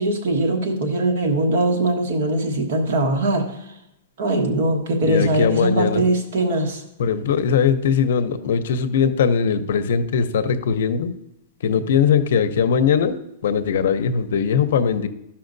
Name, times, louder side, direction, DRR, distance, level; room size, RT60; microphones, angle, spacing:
voice 1, 0.0-3.6 4.2-6.8, right 1 dB, 60° right, 2 dB, 1.3 m, -21 dB
voice 2, 5.0-6.0 7.0-11.1 11.6-13.2 13.4-15.1, left 7 dB, 70° left, 12 dB, 0.6 m, -20 dB
12.5 x 5.7 x 2.6 m, 0.85 s
supercardioid pair, 165°, 0 cm